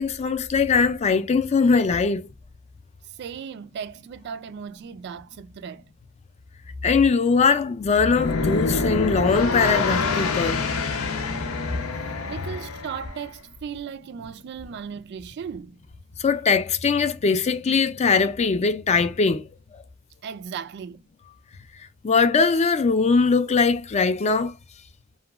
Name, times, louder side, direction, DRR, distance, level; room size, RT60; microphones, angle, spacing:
voice 1, 0.0-2.3 6.8-10.6 11.7-11.8 16.2-19.5 22.0-24.5, left 4 dB, 30° left, 0.4 m, -21 dB
voice 2, 3.2-5.9 12.3-15.8 20.2-21.0, right 7 dB, 55° right, 0.3 m, -36 dB
sound 1, 8.1-13.2, left 4 dB, 90° left, 0.7 m, -26 dB
2.8 x 2.2 x 2.4 m
head